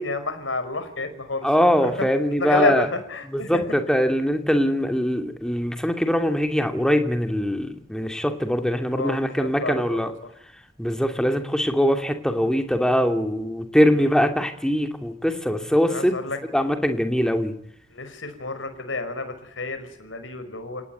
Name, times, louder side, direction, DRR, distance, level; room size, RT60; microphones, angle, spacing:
voice 1, 0.0-1.5 1.7-2.1 2.4-3.6 8.9-10.1 13.9-14.1 15.9-16.4 17.9-20.8, left 2 dB, 70° left, 9 dB, 5.3 m, -29 dB
voice 2, 1.4-2.9 3.3-10.1 10.8-16.2 16.5-17.5, equal, 5° left, 6 dB, 2.7 m, -22 dB
29.0 x 18.5 x 9.2 m, 0.72 s
head